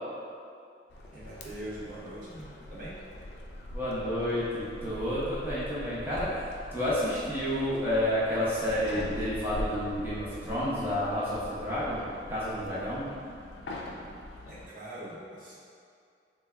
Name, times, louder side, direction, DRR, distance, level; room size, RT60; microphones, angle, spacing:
sound 1, 0.9-14.7, left 1 dB, 65° left, 0.4 m, -42 dB
voice 1, 1.1-3.0 14.5-15.6, right 1 dB, 50° right, -8 dB, 0.6 m, -42 dB
voice 2, 3.7-6.3 6.7-12.0 12.3-13.1, equal, 10° right, -10 dB, 0.7 m, -30 dB
3.3 x 2.2 x 3.3 m, 2.3 s
head